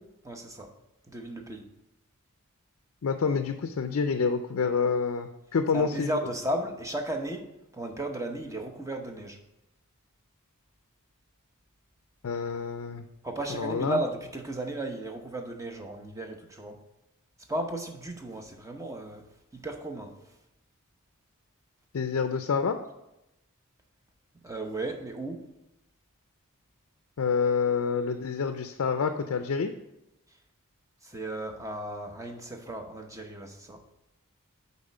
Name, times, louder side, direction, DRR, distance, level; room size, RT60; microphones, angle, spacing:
voice 1, 0.2-0.7 1.1-1.6 5.7-9.4 13.2-16.8 17.5-19.2 19.5-20.1 24.4-25.4 31.0-33.8, right 1 dB, 15° right, 4 dB, 0.8 m, -35 dB
voice 2, 3.0-6.2 12.2-13.0 13.5-14.0 21.9-22.8 27.2-29.7, left 5 dB, 65° left, 7 dB, 0.4 m, -27 dB
8.6 x 4.1 x 5.4 m, 0.90 s
head